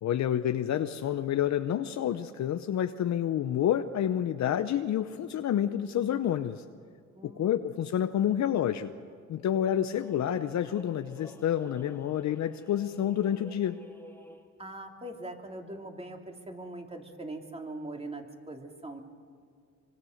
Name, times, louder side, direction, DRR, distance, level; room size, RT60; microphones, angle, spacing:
voice 1, 0.0-6.6 7.2-8.9 9.3-13.8, left 10 dB, 65° left, 8 dB, 0.9 m, -29 dB
voice 2, 7.1-7.7 14.6-19.0, right 2 dB, 20° right, 2 dB, 2.9 m, -41 dB
sound 1, 9.9-14.6, left 1 dB, 10° left, 2.4 m, -53 dB
25.0 x 24.0 x 6.6 m, 2.1 s
cardioid pair, 90°, 30 cm